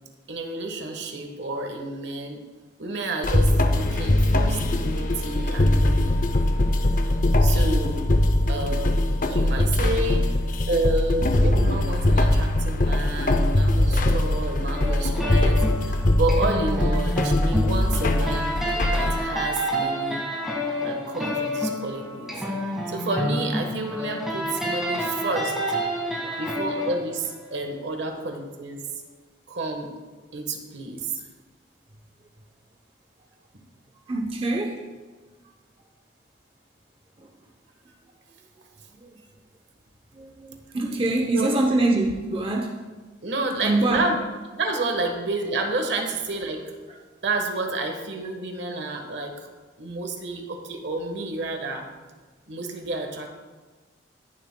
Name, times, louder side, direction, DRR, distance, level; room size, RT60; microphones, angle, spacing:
voice 1, 0.3-2.4 2.8-6.2 7.4-8.0 8.5-8.9 9.2-10.2 10.7-18.5 18.9-20.2 20.7-22.4 22.9-25.5 26.4-28.8 29.5-29.9 30.3-31.2 41.3-41.5 43.2-44.1 44.5-46.6 47.2-49.3 49.8-51.9 52.5-53.3, right 2 dB, 65° right, 4 dB, 1.3 m, -30 dB
sound 1, 3.2-19.2, left 1 dB, 45° left, 0.6 m, -21 dB
sound 2, 14.7-27.9, equal, ahead, 1.7 m, -29 dB
voice 2, 34.1-34.8 37.2-37.3 39.0-39.2 40.2-42.8 43.6-44.0 45.0-45.1, right 2 dB, 30° right, 1 dB, 0.7 m, -24 dB
19.0 x 7.2 x 2.2 m, 1.3 s
head